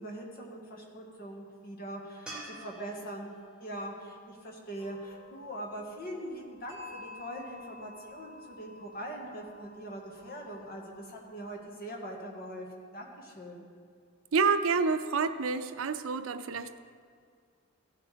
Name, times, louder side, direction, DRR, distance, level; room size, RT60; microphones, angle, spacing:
voice 1, 0.0-3.3 3.6-13.6, right 1 dB, 45° left, 0 dB, 1.6 m, -42 dB
sound 1, 2.3-5.5 8.8-8.9, right 2 dB, 5° right, 1.9 m, -49 dB
sound 2, 4.8-11.6, left 2 dB, 20° left, 3.0 m, -51 dB
voice 2, 14.3-16.8, right 5 dB, 80° right, 11 dB, 0.5 m, -28 dB
15.5 x 7.4 x 3.4 m, 2.2 s
head